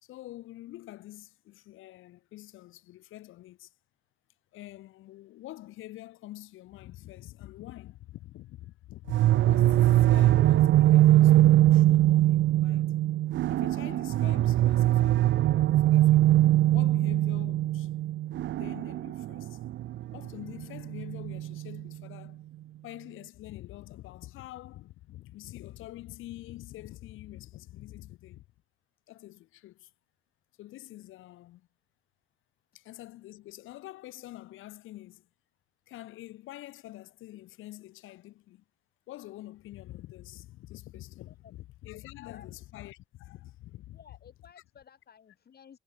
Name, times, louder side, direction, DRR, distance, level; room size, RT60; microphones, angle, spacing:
voice 1, 0.0-3.7 4.5-12.9 13.5-16.2 16.7-17.9 18.6-19.6 20.1-22.4 22.8-28.4 29.1-29.9 30.6-31.7 32.7-35.3 35.9-38.6 39.1-44.0, left 16 dB, 90° left, 3.0 m, -46 dB
sound 1, 9.1-21.9, right 14 dB, 70° right, 0.7 m, -22 dB
voice 2, 43.9-45.8, left 7 dB, 50° left, 5.8 m, -55 dB
cardioid pair, 90°, 20 cm